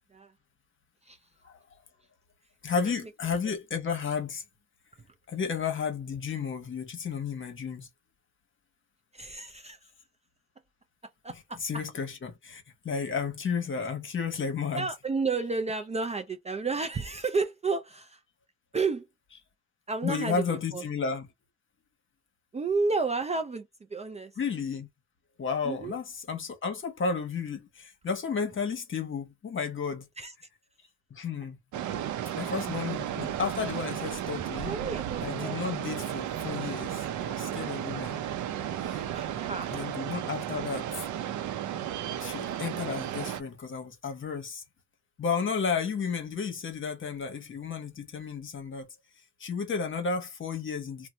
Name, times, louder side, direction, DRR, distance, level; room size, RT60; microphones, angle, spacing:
voice 1, 2.6-4.4 5.3-7.9 11.3-15.0 20.0-21.3 24.4-24.9 25.4-30.0 31.1-31.6 32.4-34.7 35.2-38.2 38.8-39.0 39.7-40.9 42.2-44.6 45.2-48.9 49.4-51.1, left 5 dB, 40° left, 1.1 m, -32 dB
voice 2, 9.1-9.9 11.2-11.8 14.7-18.2 18.7-19.1 19.9-20.5 20.7-20.8 22.5-24.3 25.6-26.0 30.2-30.3 34.7-35.6 39.1-39.9, right 4 dB, 20° right, 0.4 m, -31 dB
sound 1, 31.7-43.4, right 10 dB, 75° right, 0.6 m, -34 dB
2.7 x 2.2 x 3.1 m
cardioid pair, 90°, 30 cm